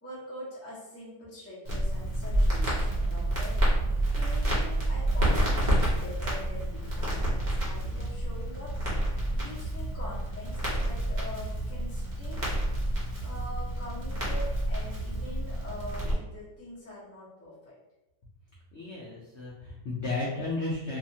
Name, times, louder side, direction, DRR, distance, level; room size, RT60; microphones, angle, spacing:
voice 1, 0.0-3.6 4.1-8.7 9.3-12.5 13.2-17.8, left 1 dB, 15° left, -7 dB, 0.4 m, -44 dB
Crackle, 1.6-16.1, right 1 dB, 35° right, 0.7 m, -29 dB
voice 2, 18.7-21.0, left 2 dB, 70° left, -5 dB, 0.6 m, -33 dB
2.7 x 2.4 x 2.6 m, 0.95 s
omnidirectional pair, 1.8 m